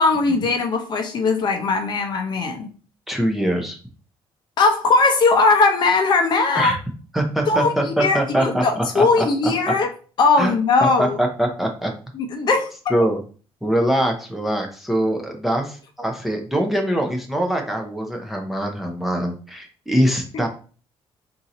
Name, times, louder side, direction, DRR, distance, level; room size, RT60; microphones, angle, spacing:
voice 1, 0.0-2.7 4.6-6.7 7.5-9.9 10.2-11.2 12.1-12.7 20.3-20.4, left 3 dB, 45° left, 5 dB, 0.7 m, -19 dB
voice 2, 3.1-3.8 6.5-6.8 7.1-9.3 10.4-10.6 11.0-11.9 12.9-13.2 13.6-20.5, right 1 dB, ahead, 2 dB, 0.6 m, -23 dB
3.7 x 2.8 x 4.1 m, 0.39 s
cardioid pair, 160°, 10 cm